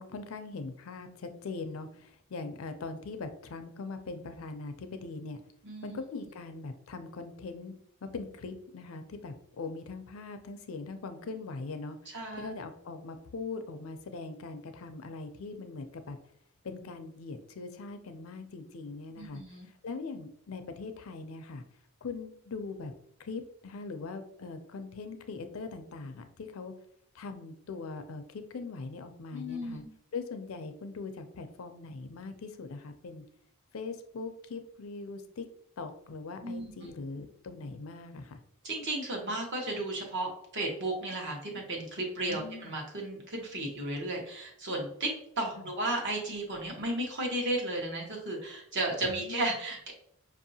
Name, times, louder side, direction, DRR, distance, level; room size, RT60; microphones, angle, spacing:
voice 1, 0.0-5.4 5.8-7.7 8.0-16.2 16.6-19.4 19.8-21.6 22.0-22.9 23.2-26.7 27.1-29.8 30.1-33.2 33.7-35.5 35.8-38.4 42.3-42.7 45.6-45.7 49.0-49.5, left 4 dB, 65° left, 8 dB, 0.5 m, -41 dB
voice 2, 5.6-6.0 12.1-12.5 19.2-19.7 29.3-29.9 36.4-36.9 38.6-49.9, right 1 dB, 55° right, 0 dB, 1.1 m, -34 dB
5.3 x 2.7 x 2.7 m, 0.68 s
head